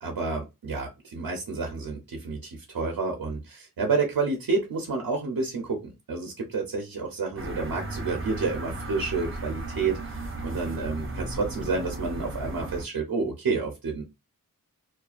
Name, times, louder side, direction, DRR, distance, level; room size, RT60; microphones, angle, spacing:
voice 1, 0.0-14.0, right 4 dB, 85° right, 1 dB, 0.6 m, -29 dB
sound 1, 7.4-12.8, right 2 dB, 35° right, 0.6 m, -35 dB
2.4 x 2.3 x 2.4 m, 0.23 s
wide cardioid pair, 90°, 35 cm